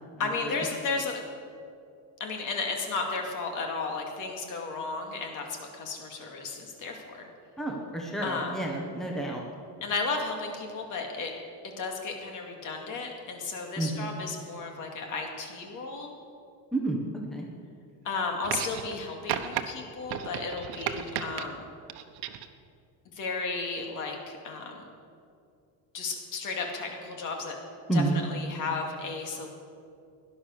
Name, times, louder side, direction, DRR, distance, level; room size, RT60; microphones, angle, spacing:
voice 1, 0.2-1.2 2.2-7.3 8.2-8.5 9.8-11.3 11.8-16.1 18.0-21.7 23.1-24.9 25.9-27.6 27.9-29.5, left 4 dB, 50° left, 2 dB, 2.4 m, -34 dB
voice 2, 7.6-9.4 13.8-14.1 16.7-17.0 17.3-17.5 27.9-28.2, right 2 dB, ahead, -1 dB, 1.2 m, -29 dB
sound 1, 18.4-19.0 19.3-19.6 20.1-21.5 21.9-22.5 23.6-23.7, right 11 dB, 75° right, 1.1 m, -34 dB
17.0 x 11.0 x 6.6 m, 2.4 s
cardioid pair, 175°, 40 cm